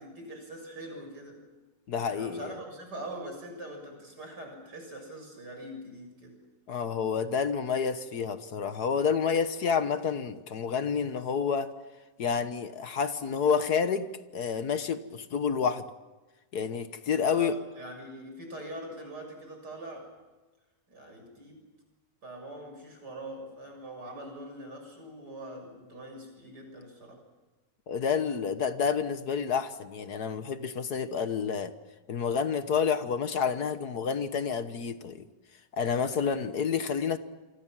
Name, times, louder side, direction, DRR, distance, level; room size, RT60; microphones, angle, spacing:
voice 1, 0.0-1.4 2.1-6.4 17.1-20.1 20.9-21.6 22.2-27.2, right 1 dB, 70° right, 3 dB, 7.7 m, -43 dB
voice 2, 1.9-2.5 6.7-11.7 12.2-15.9 16.5-17.5 27.9-31.7 32.1-35.2 35.7-37.2, left 6 dB, 65° left, 11 dB, 1.7 m, -29 dB
28.5 x 24.5 x 7.5 m, 1.2 s
omnidirectional pair, 1.9 m